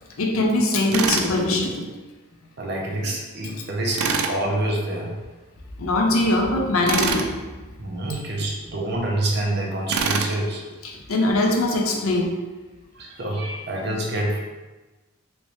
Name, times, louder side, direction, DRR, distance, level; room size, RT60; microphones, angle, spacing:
voice 1, 0.2-1.8 3.0-3.1 5.8-7.3 10.8-12.3, left 2 dB, 80° left, 1 dB, 0.6 m, -21 dB
Tools, 0.9-1.3 3.9-4.4 6.9-7.3 9.9-10.3, right 5 dB, 90° right, 0.4 m, -24 dB
voice 2, 2.6-5.1 7.8-10.6 11.4-11.5 12.9-14.4, right 1 dB, 50° right, -2 dB, 0.7 m, -27 dB
3.1 x 2.9 x 3.1 m, 1.2 s
head